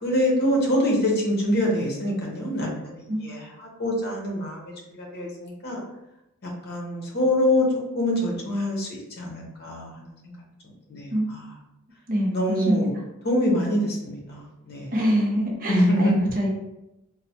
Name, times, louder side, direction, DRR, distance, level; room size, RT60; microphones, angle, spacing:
voice 1, 0.0-3.5 3.8-5.8 6.4-7.7 7.9-8.9 9.2-10.3 10.9-11.1 12.3-12.9 13.2-14.9 15.7-16.2, equal, 45° left, -1 dB, 0.7 m, -25 dB
voice 2, 12.1-12.9 14.9-16.5, equal, 40° right, -1 dB, 0.5 m, -25 dB
3.1 x 2.0 x 2.7 m, 0.90 s
head